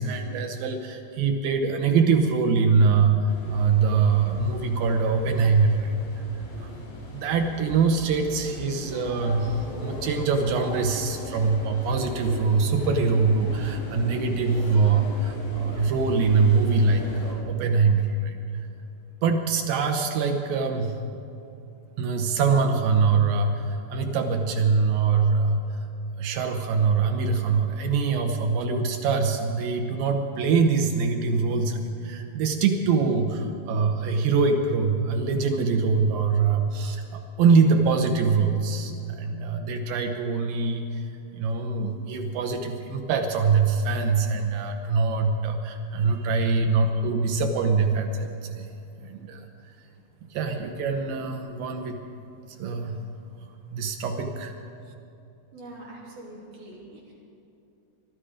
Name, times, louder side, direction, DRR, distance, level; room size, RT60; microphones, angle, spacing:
voice 1, 0.0-5.9 6.6-6.7 7.1-18.4 19.2-21.0 22.0-25.6 26.1-41.0 41.3-48.7 49.0-49.5 50.3-52.0 52.6-53.0 53.7-54.5, right 4 dB, 75° right, 4 dB, 2.1 m, -23 dB
sound 1, 3.3-17.3, left 1 dB, 80° left, 6.0 m, -38 dB
voice 2, 45.9-46.3 48.7-48.9 49.9-50.0 53.4-53.5 55.5-57.1, right 1 dB, 50° right, -5 dB, 4.2 m, -45 dB
23.0 x 12.0 x 5.0 m, 2.7 s
omnidirectional pair, 5.1 m